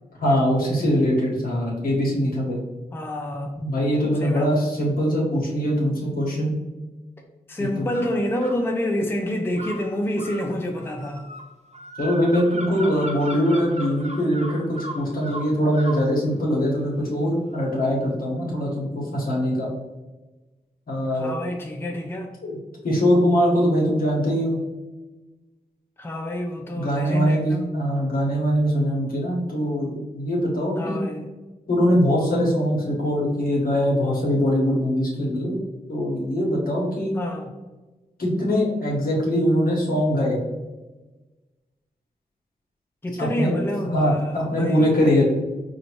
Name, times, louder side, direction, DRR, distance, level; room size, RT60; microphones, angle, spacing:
voice 1, 0.2-2.6 3.6-6.5 7.6-7.7 12.0-19.7 20.9-21.3 22.4-22.6 22.8-24.6 26.7-31.0 31.7-35.6 35.9-37.1 38.2-40.4 43.2-43.5 43.9-45.2, equal, 65° left, -3 dB, 1.3 m, -22 dB
voice 2, 2.9-3.6 4.2-4.7 7.5-11.2 21.1-22.3 26.0-27.7 30.8-31.3 37.2-37.5 43.0-44.9, left 1 dB, 15° left, 2 dB, 0.5 m, -28 dB
sound 1, 7.9-8.6 9.5-16.1, right 1 dB, 45° right, 0.7 m, -37 dB
4.8 x 2.7 x 3.0 m, 1.2 s
cardioid pair, 75°, 16 cm